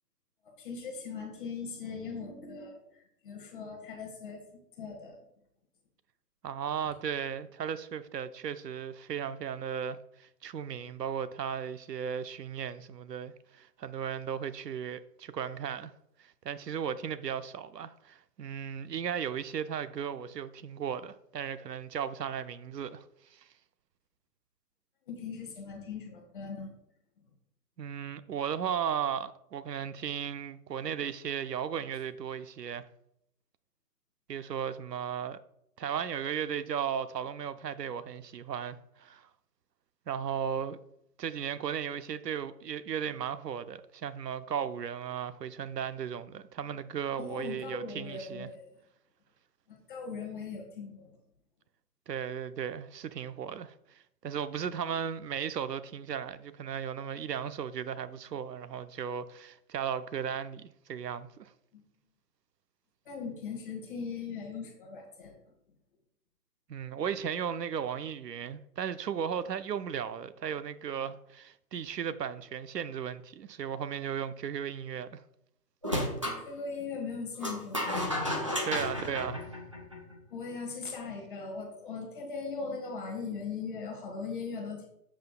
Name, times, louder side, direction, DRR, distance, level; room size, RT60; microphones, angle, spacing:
voice 1, 0.6-5.2 25.1-26.7 47.2-48.7 49.7-51.1 61.7-61.8 63.0-65.4 76.3-77.9 80.3-84.9, left 5 dB, 30° left, 1.5 m, -39 dB
voice 2, 6.4-15.9 16.2-23.0 23.3-23.5 27.8-32.9 34.3-35.4 35.8-39.3 40.1-40.8 41.2-48.5 52.1-61.5 66.7-75.2 78.6-79.4, right 8 dB, 90° right, 0.7 m, -36 dB
sound 1, 75.8-76.4 77.4-80.1, left 1 dB, 20° right, 0.5 m, -32 dB
8.0 x 7.4 x 2.2 m
hypercardioid pair, 165°, 48 cm